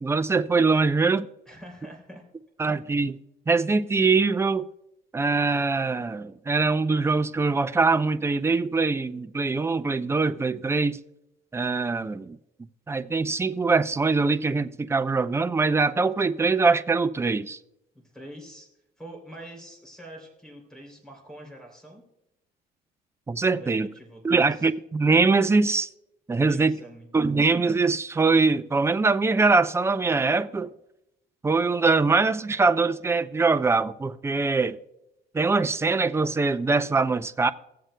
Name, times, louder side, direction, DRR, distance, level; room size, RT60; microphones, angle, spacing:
voice 1, 0.0-1.3 2.6-3.2 3.5-4.7 5.1-11.0 11.5-12.4 12.9-17.6 23.3-23.9 24.2-25.9 26.3-26.8 27.1-30.7 31.4-34.8 35.3-37.5, right 4 dB, 15° right, 0.4 m, -23 dB
voice 2, 1.5-2.2 2.6-2.8 17.9-18.7 19.0-22.0 23.5-24.7 26.4-27.4, right 1 dB, 5° left, 3.1 m, -45 dB
17.5 x 7.6 x 2.2 m
cardioid pair, 110°, 17 cm